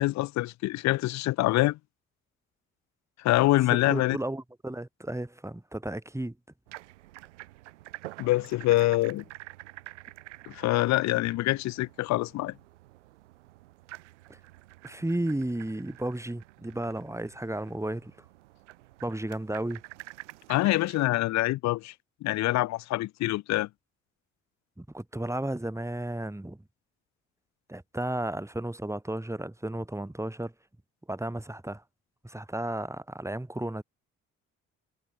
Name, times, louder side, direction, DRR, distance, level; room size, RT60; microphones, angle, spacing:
voice 1, 0.0-1.8 3.2-4.2 8.2-9.2 10.5-12.5 20.5-21.9 22.2-23.7, left 17 dB, 50° left, 0.7 m, -25 dB
voice 2, 3.7-6.4 14.3-14.4 14.8-18.1 19.0-19.8 24.8-26.6 27.7-30.5 31.1-31.8 32.2-33.8, right 1 dB, 10° right, 5.1 m, -33 dB
sound 1, 6.7-21.1, right 17 dB, 75° right, 1.4 m, -49 dB
figure-of-eight pair, 40°, 36 cm